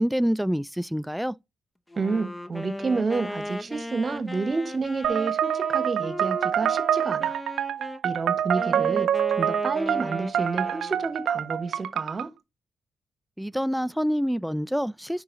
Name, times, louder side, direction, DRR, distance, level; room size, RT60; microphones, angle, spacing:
voice 1, 0.0-1.4 13.4-15.2, equal, ahead, 0.3 m, -26 dB
Wind instrument woodwind instrument, 1.9-8.0 8.5-11.2, left 1 dB, 15° left, 0.7 m, -37 dB
voice 2, 2.0-7.4 8.0-9.1 9.4-12.3, right 4 dB, 50° right, 1.2 m, -29 dB
sound 1, 5.0-12.3, right 9 dB, 80° right, 0.4 m, -26 dB
10.0 x 4.8 x 2.6 m
supercardioid pair, 50°, 0 cm